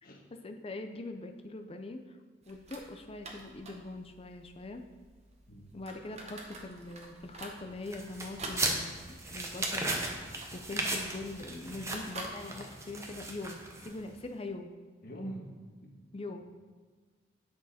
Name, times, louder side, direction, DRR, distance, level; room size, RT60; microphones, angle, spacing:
voice 1, 0.4-2.2 2.5-4.8 5.7-10.1 10.5-14.7 16.1-16.4, left 2 dB, 30° left, 6 dB, 0.5 m, -42 dB
sound 1, 2.4-12.3, right 2 dB, 35° right, 1.1 m, -48 dB
sound 2, 7.9-14.1, right 2 dB, 15° right, 0.9 m, -36 dB
voice 2, 15.0-15.5 15.8-16.0, right 1 dB, 55° left, 0 dB, 1.4 m, -43 dB
9.5 x 6.3 x 4.2 m, 1.5 s
head